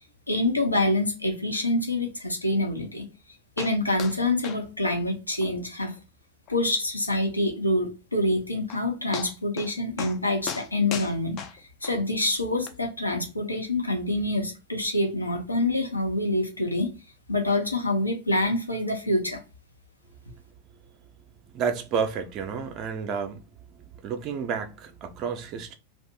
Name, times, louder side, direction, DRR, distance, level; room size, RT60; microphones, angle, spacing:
voice 1, 0.3-3.0 3.6-6.0 6.5-11.4 11.8-16.9 17.3-19.4, left 1 dB, 85° left, 0.7 m, -26 dB
sound 1, 3.6-3.7 4.0-4.2 4.4-4.6 4.9-5.0 5.4-5.5 5.9-6.0 6.5-6.6 8.3-8.4 8.7-8.8 9.1-9.7 10.0-10.2 10.5-11.9 12.7-12.8, left 8 dB, 35° left, 0.4 m, -36 dB
voice 2, 21.5-23.4 23.8-25.7, right 6 dB, 35° right, 0.5 m, -30 dB
2.6 x 2.4 x 3.7 m
figure-of-eight pair, 90°, 0 cm